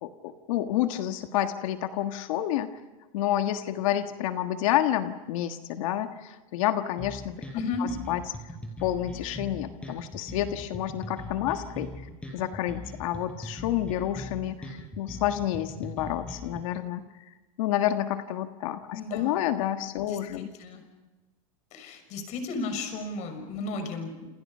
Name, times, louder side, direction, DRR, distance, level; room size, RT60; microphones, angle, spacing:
voice 1, 0.0-2.7 3.1-7.3 7.8-8.2 8.8-11.9 12.3-17.3 17.6-20.5, left 12 dB, 65° left, 7 dB, 1.7 m, -29 dB
sound 1, 7.0-16.6, left 1 dB, 5° left, 5.9 m, -40 dB
voice 2, 7.5-7.9 18.9-19.4 20.0-20.8 21.7-24.3, left 3 dB, 40° left, 7 dB, 6.3 m, -34 dB
29.0 x 28.0 x 5.7 m, 1.2 s
supercardioid pair, 155°, 18 cm